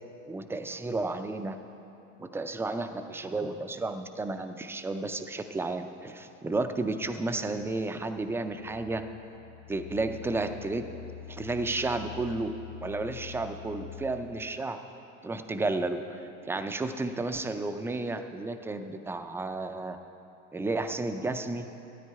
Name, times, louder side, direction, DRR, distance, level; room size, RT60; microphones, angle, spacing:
voice 1, 0.3-1.6 2.2-9.0 9.7-10.9 11.3-12.5 12.8-14.8 15.2-20.0 20.5-21.7, right 2 dB, 5° right, 8 dB, 0.4 m, -32 dB
sound 1, 8.3-14.7, left 11 dB, 65° left, 1.0 m, -47 dB
12.5 x 9.2 x 4.7 m, 2.9 s
supercardioid pair, 105°, 37 cm